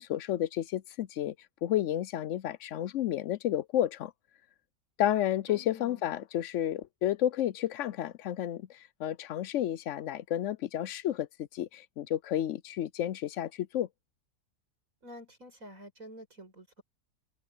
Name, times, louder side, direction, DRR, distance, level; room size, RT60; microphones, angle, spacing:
voice 1, 0.0-1.3 1.6-4.1 5.0-13.9, left 12 dB, 70° left, 0.7 m, -31 dB
voice 2, 5.5-6.0 15.0-16.8, equal, 55° right, 6.9 m, -49 dB
omnidirectional pair, 1.7 m